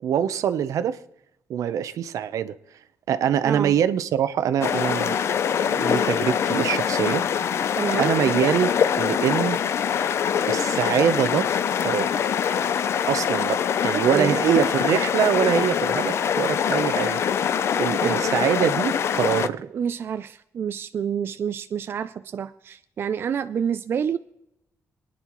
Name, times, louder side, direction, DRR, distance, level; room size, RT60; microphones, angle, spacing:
voice 1, 0.0-1.0 1.5-2.5 3.1-5.2 5.6-7.3 7.6-7.7 8.0-9.6 10.5-11.5 11.8-12.3 13.1-17.2 17.8-19.6, right 9 dB, 80° right, 0.7 m, -24 dB
voice 2, 3.4-3.8 7.8-8.1 13.9-14.4 18.0-18.4 19.7-24.2, right 7 dB, 45° right, 0.4 m, -28 dB
sound 1, 4.6-19.5, left 8 dB, 55° left, 0.5 m, -24 dB
27.5 x 9.9 x 3.1 m
wide cardioid pair, 175°, 6 cm